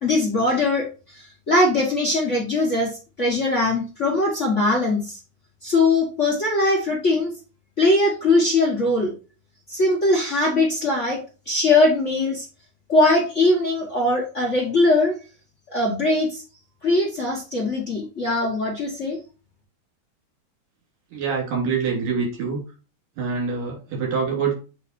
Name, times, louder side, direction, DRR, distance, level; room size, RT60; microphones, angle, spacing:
voice 1, 0.0-5.2 5.6-7.3 7.8-9.1 9.7-12.5 12.9-15.1 15.7-16.4 16.8-19.2, left 2 dB, 60° left, -2 dB, 0.7 m, -21 dB
voice 2, 21.1-22.6 23.2-24.5, right 5 dB, 75° right, -1 dB, 4.2 m, -25 dB
8.1 x 3.1 x 4.3 m, 0.34 s
omnidirectional pair, 3.7 m